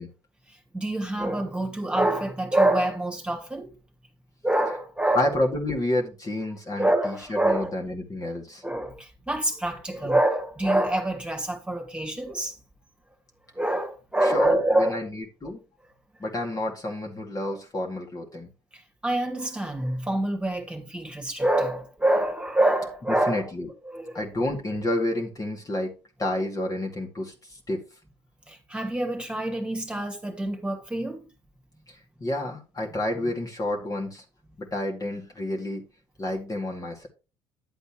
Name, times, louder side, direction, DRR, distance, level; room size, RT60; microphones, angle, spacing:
voice 1, 0.7-3.7 4.4-5.4 6.8-7.7 8.6-12.5 13.6-15.0 18.7-23.5 23.8-24.2 28.5-31.2, right 1 dB, 10° right, 2.4 m, -26 dB
voice 2, 5.1-8.6 10.0-10.1 14.3-15.6 16.2-18.5 23.3-23.7 24.1-25.9 26.2-27.3 27.7-27.8 32.2-34.2 34.6-35.8 36.2-37.1, left 1 dB, 30° left, 2.3 m, -29 dB
10.5 x 7.9 x 3.0 m
hypercardioid pair, 60°, 12 cm